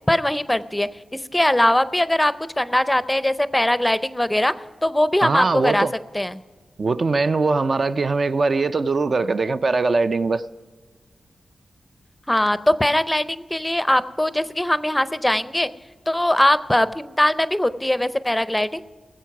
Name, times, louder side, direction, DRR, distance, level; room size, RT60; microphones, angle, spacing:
voice 1, 0.1-0.9 1.3-4.5 4.8-5.9 6.1-6.4 12.3-15.7 16.1-18.8, left 1 dB, 10° left, 0.5 m, -21 dB
voice 2, 5.2-5.9 6.8-10.4, right 3 dB, 50° right, 0.4 m, -21 dB
19.5 x 7.7 x 5.9 m
wide cardioid pair, 100°, 0 cm